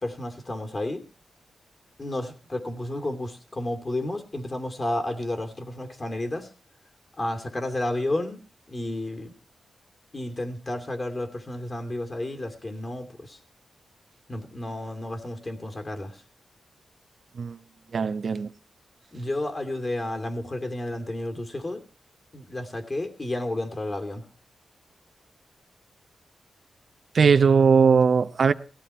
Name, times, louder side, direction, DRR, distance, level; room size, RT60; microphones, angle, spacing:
voice 1, 0.0-1.0 2.0-6.5 7.2-8.4 8.7-9.3 10.1-13.4 14.3-16.2 19.1-21.8 22.3-24.2, left 1 dB, 40° left, 2.8 m, -31 dB
voice 2, 17.9-18.5 27.1-28.5, right 5 dB, 65° right, 0.9 m, -19 dB
17.5 x 14.5 x 4.4 m
cardioid pair, 50°, 0 cm